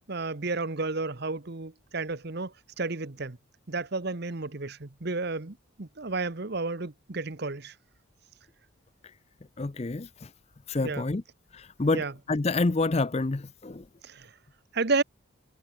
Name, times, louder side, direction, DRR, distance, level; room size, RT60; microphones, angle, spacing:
voice 1, 0.1-3.4 3.7-7.7 10.8-11.1 11.9-12.1 14.0-14.3 14.7-15.0, right 3 dB, 50° right, 1.1 m, -32 dB
voice 2, 9.6-10.3 10.7-11.2 11.5-13.8, left 3 dB, 30° left, 0.5 m, -28 dB
head